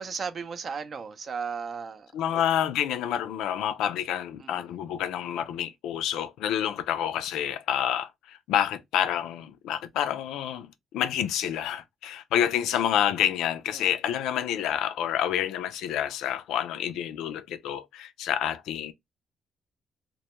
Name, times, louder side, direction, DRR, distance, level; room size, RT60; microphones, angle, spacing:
voice 1, 0.0-2.4 4.4-4.5 13.7-13.8, right 5 dB, 50° right, 0.4 m, -35 dB
voice 2, 2.1-18.9, left 10 dB, 90° left, 0.3 m, -28 dB
2.2 x 2.1 x 2.8 m
cardioid pair, 90°, 0 cm